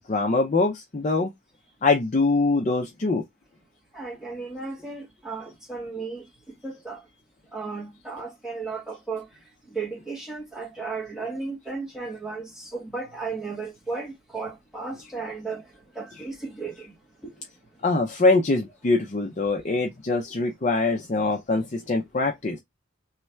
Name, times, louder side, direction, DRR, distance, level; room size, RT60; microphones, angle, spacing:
voice 1, 0.1-1.3 1.8-3.2 17.8-22.6, left 3 dB, 35° left, 0.5 m, -23 dB
voice 2, 3.9-6.3 6.6-7.0 7.5-9.3 9.7-17.0 17.2-17.3 21.2-21.6, right 4 dB, 5° right, 1.0 m, -35 dB
3.1 x 2.3 x 4.3 m
head